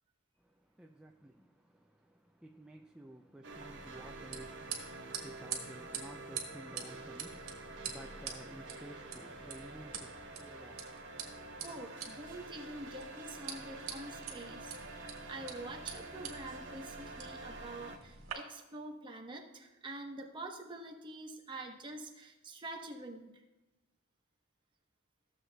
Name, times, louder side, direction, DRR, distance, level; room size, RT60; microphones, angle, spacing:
voice 1, 0.4-11.3, right 1 dB, 5° right, 0.3 m, -54 dB
sound 1, 3.4-18.0, right 2 dB, 55° right, 0.9 m, -48 dB
sound 2, 3.5-18.3, right 7 dB, 80° right, 1.5 m, -47 dB
voice 2, 11.6-23.4, right 2 dB, 25° right, 0.9 m, -46 dB
14.5 x 7.3 x 2.2 m
head